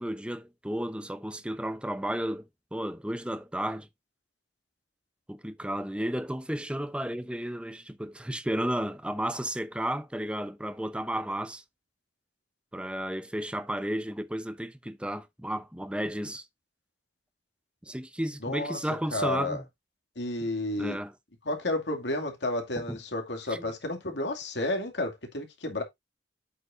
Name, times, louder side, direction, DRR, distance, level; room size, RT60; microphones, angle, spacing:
voice 1, 0.0-2.5 2.7-3.9 5.3-11.6 12.7-16.4 17.9-19.6 20.8-21.1 22.9-23.0 23.5-23.7, right 1 dB, 5° right, 0.8 m, -33 dB
voice 2, 18.4-18.8 19.1-19.6 20.2-21.0 21.4-25.8, left 1 dB, 80° left, 2.4 m, -31 dB
8.2 x 7.3 x 2.6 m
head